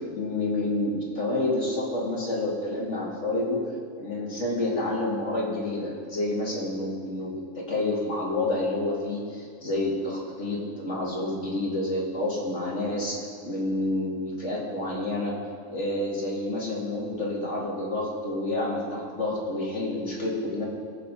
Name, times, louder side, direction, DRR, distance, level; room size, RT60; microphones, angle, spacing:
voice 1, 0.0-3.6 4.0-13.2 13.4-15.3 15.7-20.6, left 2 dB, 60° left, -4 dB, 3.0 m, -29 dB
21.5 x 8.9 x 4.1 m, 2.1 s
omnidirectional pair, 1.4 m